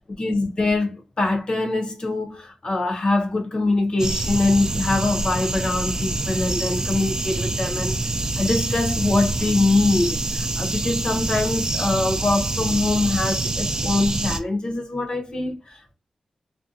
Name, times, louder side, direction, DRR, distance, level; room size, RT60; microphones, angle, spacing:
voice 1, 0.0-8.0 8.3-15.9, left 2 dB, 45° left, 0.7 m, -23 dB
sound 1, 4.0-14.4, right 2 dB, 35° right, 0.4 m, -26 dB
2.6 x 2.2 x 2.5 m
cardioid pair, 75°, 2 cm